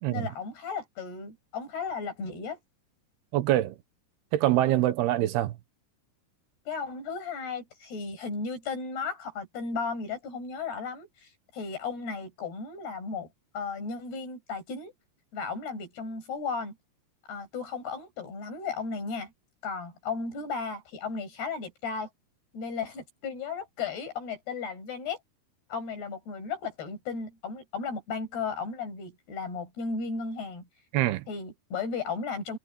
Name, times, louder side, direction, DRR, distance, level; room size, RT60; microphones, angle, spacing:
voice 1, 0.1-2.6 6.7-13.3 13.5-14.9 15.3-16.8 17.3-19.3 19.6-22.1 22.5-25.2 25.7-30.7 31.3-32.6, left 5 dB, 75° left, 8.9 m, -35 dB
voice 2, 3.3-3.8 4.3-5.6 30.9-31.3, right 14 dB, 80° right, 3.1 m, -24 dB
omnidirectional pair, 4.6 m